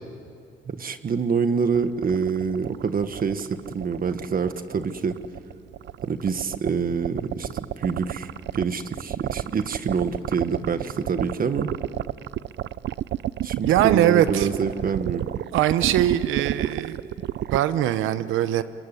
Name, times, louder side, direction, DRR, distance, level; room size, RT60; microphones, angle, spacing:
voice 1, 0.6-5.1 6.0-11.7 13.4-15.2, right 6 dB, 45° right, 9 dB, 1.5 m, -26 dB
sound 1, 1.8-17.6, right 13 dB, 65° right, 0.6 m, -30 dB
voice 2, 13.6-14.5 15.5-17.0 17.5-18.6, right 11 dB, 90° right, 12 dB, 1.0 m, -21 dB
25.5 x 23.5 x 9.9 m, 2.5 s
cardioid pair, 90°, 20 cm